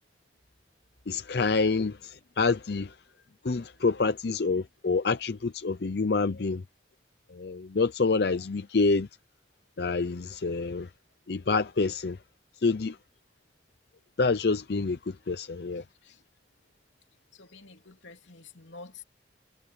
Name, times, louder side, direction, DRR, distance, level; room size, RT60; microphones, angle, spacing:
voice 1, 1.1-2.9 3.4-6.6 7.3-9.1 9.8-10.9 11.3-12.2 12.6-13.0 14.2-15.8, left 4 dB, 60° left, 0.6 m, -27 dB
voice 2, 15.8-16.2 17.3-19.0, left 4 dB, 90° left, 3.2 m, -49 dB
head